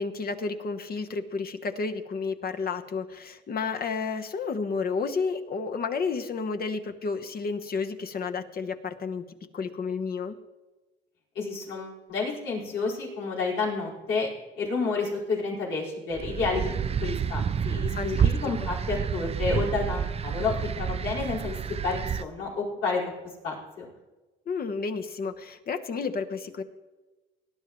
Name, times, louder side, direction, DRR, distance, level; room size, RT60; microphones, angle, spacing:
voice 1, 0.0-9.2 9.5-10.4 17.9-18.3 24.5-26.6, left 4 dB, 50° left, 8 dB, 1.0 m, -31 dB
voice 2, 11.3-14.3 14.6-16.7 17.0-23.0 23.4-23.9, left 4 dB, 85° left, -6 dB, 4.8 m, -30 dB
sound 1, 16.1-22.2, right 7 dB, 30° right, 0.4 m, -29 dB
19.0 x 10.5 x 3.1 m, 1.2 s
cardioid pair, 90°, 20 cm